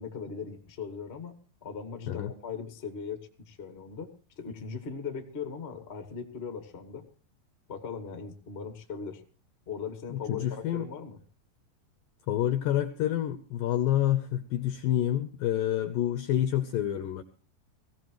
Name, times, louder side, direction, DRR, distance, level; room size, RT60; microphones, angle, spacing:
voice 1, 0.0-1.3 1.6-4.1 4.4-7.0 7.7-9.2 9.6-11.2, left 6 dB, 45° left, 6 dB, 0.8 m, -39 dB
voice 2, 10.1-10.9 12.3-17.2, left 12 dB, 75° left, 10 dB, 2.1 m, -28 dB
21.0 x 16.0 x 3.1 m, 0.37 s
omnidirectional pair, 5.1 m